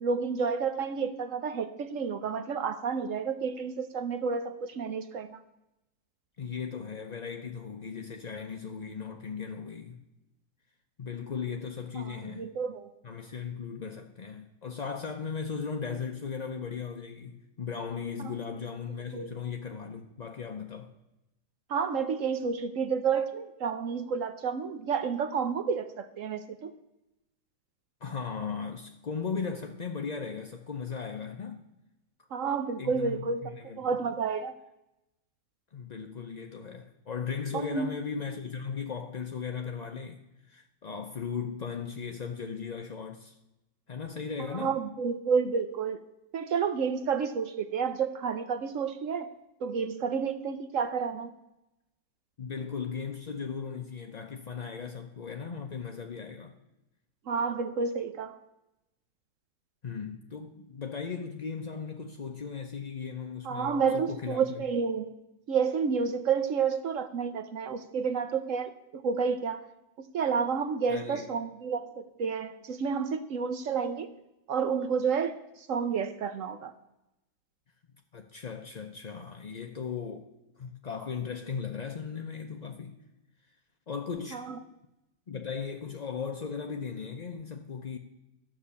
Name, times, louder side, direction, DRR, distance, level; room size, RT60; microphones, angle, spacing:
voice 1, 0.0-5.4 12.0-12.9 18.2-18.3 19.1-19.3 21.7-26.7 32.3-34.6 37.5-37.9 44.5-46.0 46.3-49.3 49.6-51.3 57.3-58.4 63.4-65.1 65.5-69.7 70.0-74.1 74.5-76.7 84.3-84.6, right 6 dB, 60° right, 0.9 m, -30 dB
voice 2, 6.4-10.0 11.0-12.5 13.0-20.9 28.0-31.6 32.2-32.3 32.8-33.9 35.7-43.4 43.9-44.7 52.4-56.6 59.8-64.6 70.9-71.3 78.1-80.3 80.6-83.0 83.9-84.5 85.3-88.0, left 6 dB, 55° left, 0.4 m, -37 dB
12.5 x 6.1 x 8.4 m
omnidirectional pair, 1.8 m